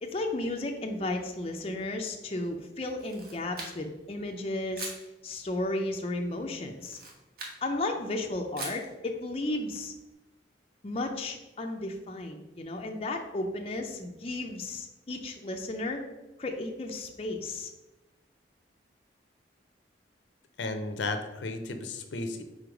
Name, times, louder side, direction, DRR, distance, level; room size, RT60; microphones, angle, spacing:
voice 1, 0.0-4.9 5.2-7.0 7.6-9.9 10.8-16.0 16.4-17.7, left 2 dB, 30° left, 2 dB, 0.5 m, -34 dB
Camera, 2.9-4.0 4.7-5.1 6.7-7.6 8.6-8.9, right 3 dB, 55° right, 1.2 m, -41 dB
voice 2, 20.6-22.4, left 3 dB, 80° left, 7 dB, 0.6 m, -34 dB
4.7 x 4.2 x 5.0 m, 1.0 s
head